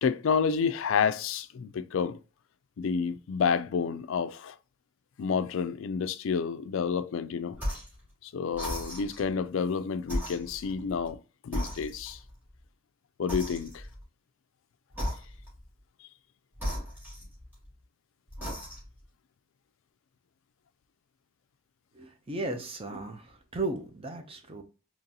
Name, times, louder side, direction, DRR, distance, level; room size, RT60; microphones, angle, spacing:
voice 1, 0.0-2.2 2.8-4.6 5.2-7.6 8.2-12.2 13.2-13.8 16.0-16.1, left 6 dB, 65° left, 0.3 m, -29 dB
sound 1, 7.5-8.0 8.5-9.3 10.0-11.2 11.5-12.3 13.3-14.0 14.9-15.6 16.5-17.7 18.3-19.0, equal, 10° right, 2.0 m, -36 dB
voice 2, 21.9-24.6, right 2 dB, 25° right, 0.6 m, -35 dB
3.9 x 3.0 x 2.8 m
head